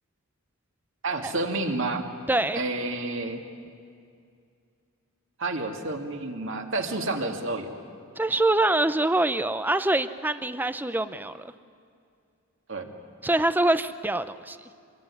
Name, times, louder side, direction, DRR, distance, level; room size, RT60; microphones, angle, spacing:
voice 1, 1.0-2.1 2.5-3.4 5.4-7.7 12.7-12.9, right 2 dB, 55° right, 4 dB, 2.4 m, -29 dB
voice 2, 2.3-2.6 8.2-11.5 13.2-14.6, right 2 dB, 10° right, 12 dB, 0.6 m, -24 dB
26.0 x 21.5 x 9.8 m, 2.4 s
head